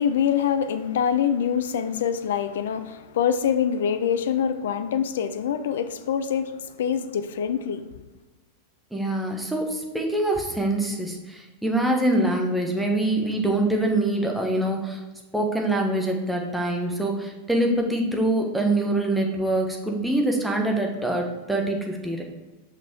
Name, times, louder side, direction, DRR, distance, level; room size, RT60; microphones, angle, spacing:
voice 1, 0.0-7.9, left 8 dB, 60° left, 0.5 m, -25 dB
voice 2, 8.9-15.0 15.3-22.2, right 1 dB, 5° right, 1.3 m, -24 dB
6.0 x 5.8 x 4.4 m
figure-of-eight pair, 90°, 0 cm